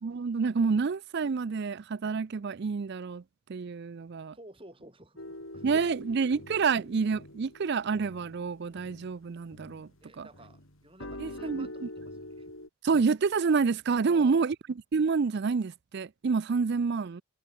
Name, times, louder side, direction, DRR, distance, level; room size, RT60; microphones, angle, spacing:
voice 1, 0.0-3.2 3.5-4.3 5.6-9.9 10.2-10.3 11.2-11.7 12.8-14.6 14.9-17.2, right 5 dB, 50° right, 0.4 m, -28 dB
voice 2, 4.3-5.9 6.3-6.4 10.0-12.5 14.0-14.5, right 1 dB, 25° right, 5.1 m, -53 dB
sound 1, 5.2-10.0 10.3-12.7, left 1 dB, 65° left, 6.7 m, -45 dB
head